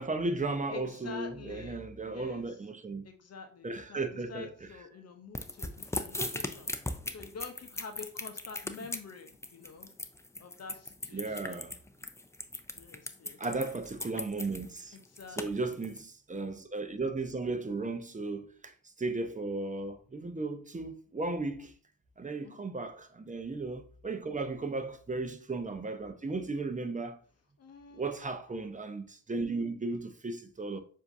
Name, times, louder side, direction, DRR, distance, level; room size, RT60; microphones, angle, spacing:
voice 1, 0.0-3.1 3.6-4.5 11.1-11.8 13.4-15.0 15.4-21.7 22.2-27.2 27.9-30.8, right 3 dB, 20° right, 0.8 m, -35 dB
voice 2, 0.7-2.6 3.0-9.9 10.4-11.7 12.7-13.4 14.9-15.8 22.4-22.5 24.3-24.6 27.6-28.1, left 5 dB, 45° left, 0.8 m, -48 dB
sound 1, 5.4-16.0, left 2 dB, 10° left, 0.6 m, -38 dB
6.8 x 2.8 x 2.6 m
hypercardioid pair, 50°, 36 cm